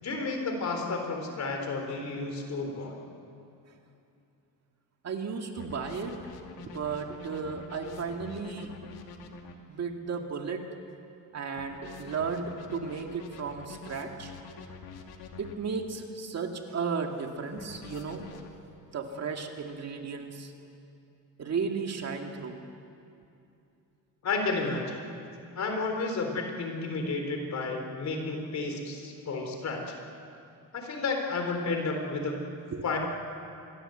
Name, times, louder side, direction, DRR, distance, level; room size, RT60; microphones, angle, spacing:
voice 1, 0.0-2.9 24.2-25.0 25.5-29.8 30.7-32.4 32.8-33.0, left 3 dB, 45° left, 3 dB, 4.3 m, -31 dB
voice 2, 5.0-6.2 6.6-8.8 9.7-10.7 11.3-14.3 15.4-18.4 18.9-20.5 21.4-22.6 32.7-32.8, right 5 dB, 45° right, 3 dB, 2.3 m, -34 dB
sound 1, 5.6-9.5 11.6-15.5 17.6-18.5, left 5 dB, 80° left, 2.6 m, -45 dB
26.0 x 22.0 x 8.0 m, 2.6 s
cardioid pair, 140°, 37 cm